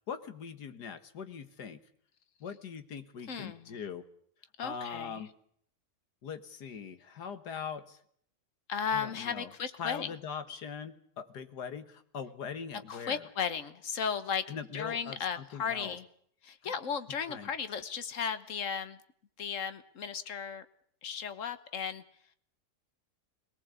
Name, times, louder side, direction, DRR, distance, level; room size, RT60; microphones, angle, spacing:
voice 1, 0.1-1.8 2.4-4.1 4.6-5.3 6.2-8.0 8.9-9.5 9.8-13.3 14.5-16.0 16.6-16.7 17.3-17.5, left 6 dB, 80° left, 10 dB, 2.0 m, -41 dB
voice 2, 3.3-3.8 4.6-5.3 8.7-10.1 12.9-16.0 16.4-19.0 19.4-20.6 21.0-22.0, left 7 dB, 55° left, 12 dB, 1.5 m, -35 dB
21.5 x 18.5 x 8.2 m, 0.64 s
omnidirectional pair, 1.7 m